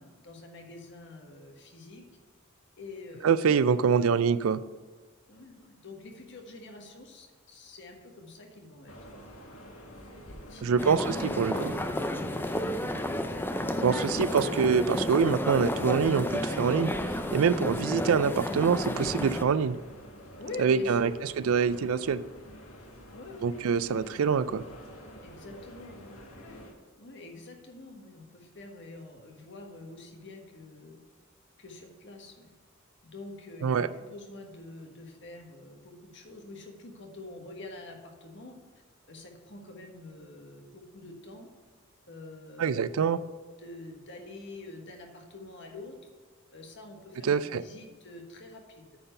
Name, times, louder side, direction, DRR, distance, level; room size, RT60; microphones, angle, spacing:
voice 1, 0.0-2.0 2.8-3.6 3.9-4.2 5.3-9.2 10.2-11.0 20.4-21.1 23.1-23.6 25.2-26.6 27.0-31.0 31.6-32.5 33.0-38.6 39.1-41.5 42.1-46.1 46.5-49.0, left 2 dB, 60° left, 3 dB, 1.4 m, -46 dB
voice 2, 3.2-4.6 10.6-11.7 13.8-16.9 17.3-19.8 20.6-21.1 21.5-22.2 23.4-24.6 33.6-33.9 42.6-43.2 47.2-47.6, right 6 dB, 75° right, 15 dB, 0.4 m, -25 dB
sound 1, 8.9-26.7, equal, 80° left, 1.6 m, -47 dB
sound 2, 10.8-19.4, left 1 dB, 10° left, 0.5 m, -31 dB
9.2 x 4.4 x 6.6 m, 1.5 s
head